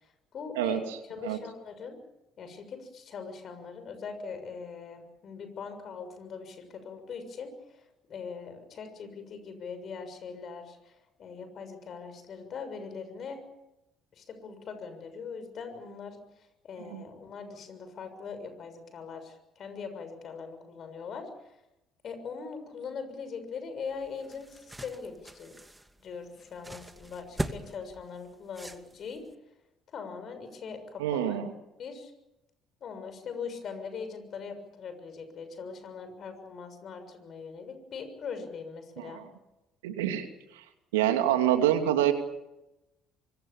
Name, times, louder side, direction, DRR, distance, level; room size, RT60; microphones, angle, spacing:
voice 1, 0.3-2.0 2.4-13.4 14.1-21.3 22.0-25.5 26.0-29.2 29.9-31.4 31.8-32.1 32.8-39.2, left 5 dB, 50° left, 9 dB, 6.7 m, -41 dB
sound 1, 23.9-29.3, right 1 dB, 10° right, 2.4 m, -41 dB
voice 2, 31.0-31.5 39.0-39.2 39.8-40.3 40.5-40.6 40.9-42.1, right 11 dB, 80° right, 6 dB, 2.7 m, -26 dB
25.0 x 24.0 x 7.2 m, 0.93 s
hypercardioid pair, 55°, 0 cm